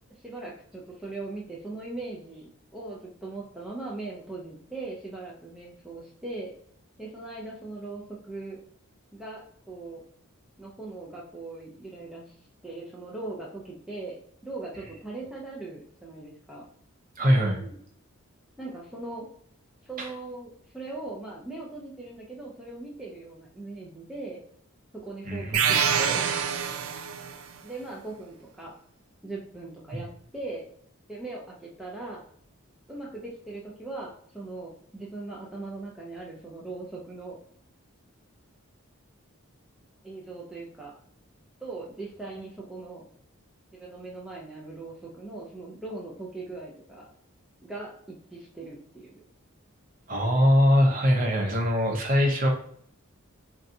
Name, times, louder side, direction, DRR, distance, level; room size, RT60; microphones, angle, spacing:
voice 1, 0.2-6.5 7.0-8.6 9.1-10.0 10.6-12.3 12.6-16.7 17.2-17.8 18.6-19.3 19.8-24.4 24.9-26.3 27.6-28.8 29.2-30.7 31.1-32.3 32.9-37.4 40.0-40.9 41.6-43.0 43.7-47.1 47.6-49.1, right 2 dB, 5° right, -4 dB, 0.4 m, -40 dB
voice 2, 17.2-17.6 20.0-20.1 25.3-26.0 29.9-30.0 50.1-52.5, equal, 35° right, 1 dB, 0.7 m, -22 dB
sound 1, 25.5-27.4, right 7 dB, 80° right, 0.4 m, -25 dB
3.9 x 2.3 x 2.5 m, 0.64 s
head